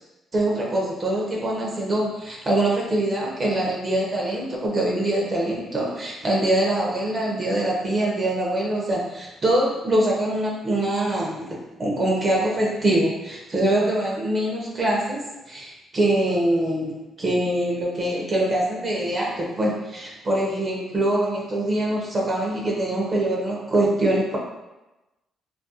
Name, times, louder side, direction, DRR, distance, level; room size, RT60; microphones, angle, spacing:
voice 1, 0.3-15.2 15.5-24.4, right 1 dB, 35° right, -3 dB, 0.5 m, -24 dB
2.3 x 2.2 x 2.6 m, 1.0 s
cardioid pair, 90°, 0 cm